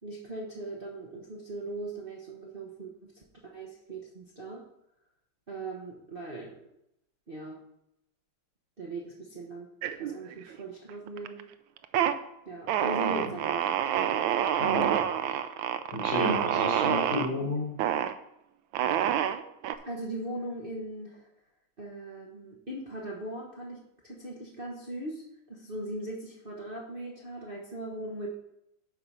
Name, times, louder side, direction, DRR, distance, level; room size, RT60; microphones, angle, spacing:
voice 1, 0.0-4.6 5.5-6.6 7.3-7.6 8.8-9.7 10.0-11.5 12.5-13.7 19.8-21.3 21.8-23.8 24.0-28.4, right 2 dB, 30° right, -3 dB, 1.2 m, -39 dB
sound 1, 9.8-10.6 10.9-11.4 11.8-12.2 12.7-17.3 17.8-18.1 18.7-19.7, right 10 dB, 75° right, 1.4 m, -27 dB
voice 2, 14.6-15.0 15.9-17.7, left 1 dB, 70° left, -5 dB, 4.9 m, -31 dB
11.0 x 4.9 x 5.5 m, 0.80 s
omnidirectional pair, 2.3 m